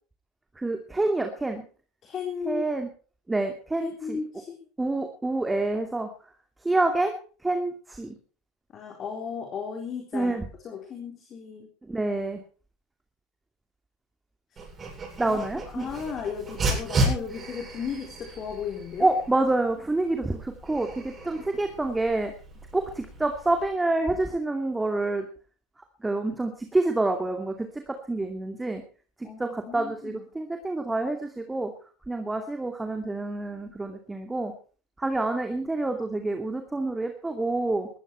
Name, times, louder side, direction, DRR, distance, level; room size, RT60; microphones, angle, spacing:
voice 1, 0.6-1.7 2.5-2.9 3.3-4.2 4.8-6.1 6.6-7.1 7.4-8.2 10.1-10.5 11.8-12.4 15.2-15.9 19.0-22.3 22.7-25.3 26.0-28.8 29.2-31.7 32.1-34.5 35.0-37.9, right 2 dB, 10° right, 6 dB, 2.5 m, -27 dB
voice 2, 2.0-2.6 3.8-4.5 8.7-10.3 10.6-11.7 14.5-14.6 15.2-15.4 15.7-19.1 29.2-30.2, left 6 dB, 35° left, 3 dB, 3.8 m, -35 dB
Dog, 14.6-23.6, right 1 dB, 25° right, 7.9 m, -34 dB
20.0 x 13.5 x 4.5 m, 0.40 s
figure-of-eight pair, 75°, 0 cm